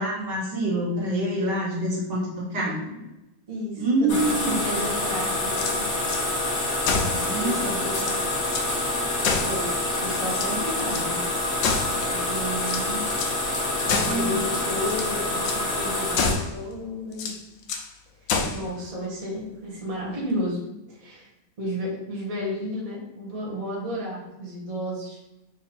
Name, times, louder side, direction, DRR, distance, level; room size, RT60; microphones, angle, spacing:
voice 1, 0.0-2.8 3.8-4.6 7.2-7.6 13.8-14.4, right 1 dB, 65° right, -3 dB, 1.6 m, -26 dB
voice 2, 2.5-3.0 3.5-5.8 6.9-8.3 9.4-9.7 10.0-11.2 11.9-13.1 13.9-17.3 18.2-20.6 20.9-21.3 21.6-25.2, equal, 25° right, -5 dB, 1.0 m, -32 dB
sound 1, 4.1-16.3, left 2 dB, 50° left, 1.3 m, -27 dB
sound 2, 5.4-6.2 6.8-7.2 7.6-7.7 7.9-8.7 9.2-9.9 10.3-11.1 11.6-12.2 12.6-13.4 13.9-14.3 14.8-15.1 15.4-15.6 16.1-16.6 17.1-17.9 18.3-18.7, left 5 dB, 70° left, 1.3 m, -28 dB
4.1 x 2.8 x 4.2 m, 0.96 s
omnidirectional pair, 2.2 m